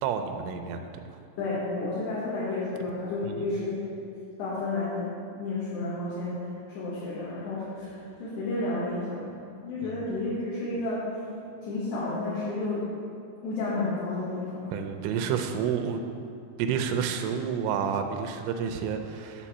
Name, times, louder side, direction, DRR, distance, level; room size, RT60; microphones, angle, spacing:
voice 1, 0.0-0.9 3.2-3.5 9.8-10.0 14.7-16.0 16.6-19.5, right 7 dB, 85° right, 6 dB, 2.9 m, -30 dB
voice 2, 1.4-4.1 4.4-6.4 6.7-9.3 9.6-11.0 11.6-12.9 13.4-14.7, left 2 dB, 65° left, -10 dB, 3.5 m, -31 dB
10.0 x 4.7 x 7.2 m, 2.5 s
omnidirectional pair, 5.5 m